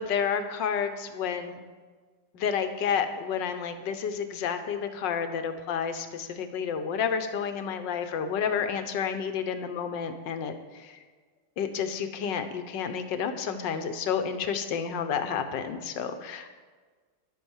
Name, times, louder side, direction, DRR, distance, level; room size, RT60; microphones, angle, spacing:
voice 1, 0.0-1.6 2.3-11.0 11.6-16.5, left 7 dB, 65° left, 8 dB, 1.6 m, -30 dB
11.0 x 8.3 x 7.2 m, 1.4 s
omnidirectional pair, 2.3 m